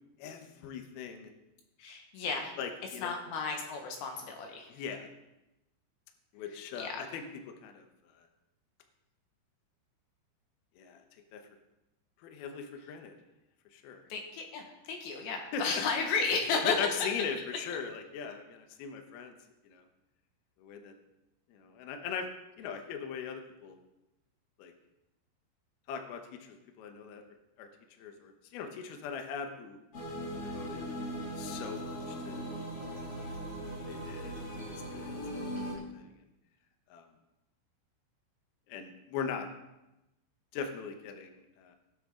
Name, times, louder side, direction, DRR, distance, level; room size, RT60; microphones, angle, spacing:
voice 1, 0.2-1.3 2.6-3.1 4.7-5.1 6.3-7.2 7.6-7.9 10.8-11.0 11.3-11.4 12.2-13.1 13.7-14.0 15.5-15.6 16.7-19.3 19.6-19.8 20.6-20.9 21.5-22.3 22.6-23.8 24.6-24.7 25.9-27.2 27.6-27.7 28.0-29.8 30.3-30.9 31.4-32.6 33.9-34.5 34.9-35.2 35.6-36.1 36.9-37.1 38.7-39.5 40.5-41.8, left 6 dB, 85° left, 5 dB, 2.1 m, -40 dB
voice 2, 1.8-2.5 3.0-4.8 6.5-7.0 14.1-16.8 35.6-35.9, left 4 dB, 70° left, 2 dB, 3.4 m, -34 dB
sound 1, 29.9-35.7, equal, 40° left, 2.5 m, -39 dB
19.0 x 7.0 x 3.7 m, 0.96 s
omnidirectional pair, 5.9 m